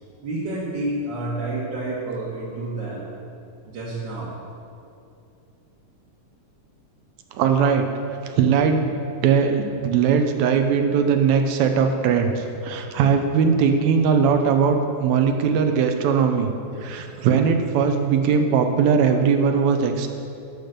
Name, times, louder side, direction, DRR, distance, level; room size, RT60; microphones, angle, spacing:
voice 1, 0.2-3.1 3.6-4.4, right 2 dB, 45° right, -7 dB, 1.6 m, -29 dB
voice 2, 7.3-7.9 8.3-8.9 9.2-16.5 16.8-20.1, right 6 dB, 75° right, 6 dB, 1.9 m, -20 dB
12.0 x 5.1 x 6.7 m, 2.6 s
omnidirectional pair, 3.5 m